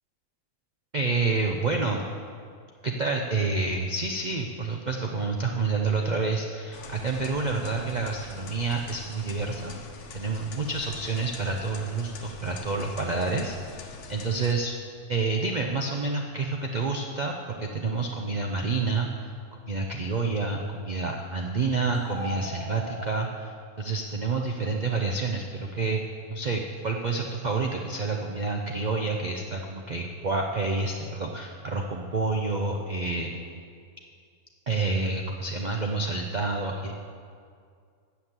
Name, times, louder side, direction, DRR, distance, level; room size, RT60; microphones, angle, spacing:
voice 1, 0.9-2.0 2.8-9.8 10.1-14.7 15.1-19.3 19.7-26.0 26.3-33.3 34.7-36.9, right 3 dB, 85° right, 1 dB, 0.4 m, -28 dB
sound 1, 6.7-14.5, left 3 dB, 75° left, 1.3 m, -44 dB
sound 2, 21.9-23.1, equal, 35° right, 3.4 m, -38 dB
8.0 x 7.0 x 7.4 m, 2.2 s
omnidirectional pair, 1.7 m